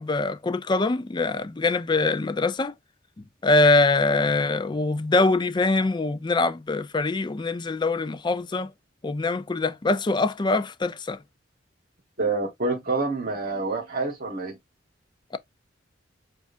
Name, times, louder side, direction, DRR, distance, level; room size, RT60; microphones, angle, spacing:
voice 1, 0.0-2.7 3.4-8.7 9.0-11.2, left 3 dB, 25° left, 0.4 m, -23 dB
voice 2, 12.2-14.6, right 3 dB, 50° right, 1.2 m, -27 dB
7.1 x 2.5 x 2.5 m
head